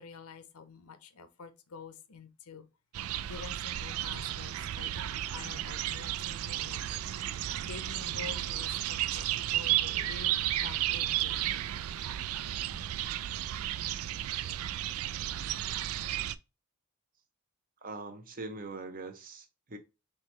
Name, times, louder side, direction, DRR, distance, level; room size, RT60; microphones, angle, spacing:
voice 1, 0.0-2.7 3.3-7.0 7.6-10.4 10.6-11.5, left 6 dB, 90° left, 0.7 m, -48 dB
sound 1, 2.9-16.4, right 12 dB, 80° right, 0.3 m, -33 dB
voice 2, 17.8-19.8, right 3 dB, 40° right, 0.7 m, -42 dB
4.6 x 3.2 x 3.1 m
head